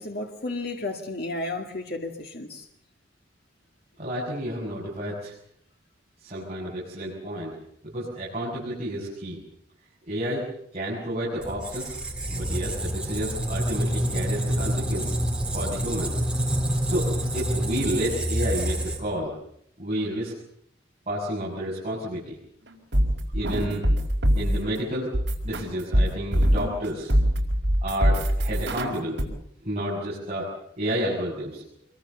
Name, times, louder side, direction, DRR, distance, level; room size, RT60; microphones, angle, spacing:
voice 1, 0.0-2.7, left 2 dB, 55° left, 3 dB, 2.2 m, -33 dB
voice 2, 4.0-5.3 6.2-7.5 7.8-9.4 10.1-10.4 10.7-12.0 12.3-15.1 15.5-16.1 16.9-17.1 17.3-19.3 19.8-20.3 21.1-22.3 23.3-23.9 24.3-25.1 25.4-27.1 27.8-29.2 29.6-30.5 30.8-31.6, equal, 35° right, -6 dB, 7.0 m, -30 dB
Squeak, 11.4-19.3, right 1 dB, 5° right, 3.7 m, -27 dB
sound 1, 22.7-24.7 25.1-26.8 27.1-29.2, equal, 65° right, 4.7 m, -23 dB
25.5 x 23.0 x 7.0 m, 0.70 s
head